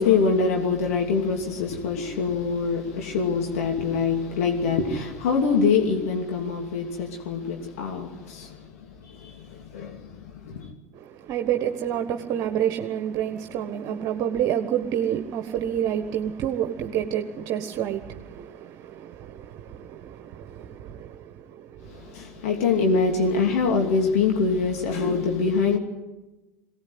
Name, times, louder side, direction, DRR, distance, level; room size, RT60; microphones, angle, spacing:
voice 1, 0.0-8.7 9.0-10.7 21.9-25.8, left 5 dB, 70° left, 2.9 m, -24 dB
voice 2, 10.9-22.5, right 10 dB, 50° right, 1.5 m, -29 dB
22.5 x 18.0 x 9.6 m
hypercardioid pair, 75°, 8 cm